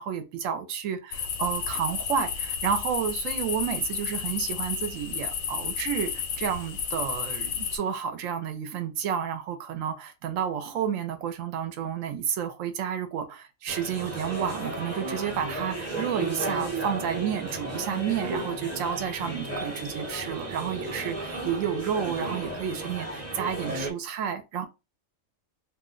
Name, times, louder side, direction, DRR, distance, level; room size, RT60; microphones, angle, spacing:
voice 1, 0.0-24.7, right 8 dB, 75° right, 0.9 m, -31 dB
sound 1, 1.1-7.8, left 7 dB, 85° left, 1.0 m, -32 dB
sound 2, 13.7-23.9, right 2 dB, 15° right, 0.6 m, -34 dB
2.4 x 2.1 x 3.6 m
omnidirectional pair, 1.4 m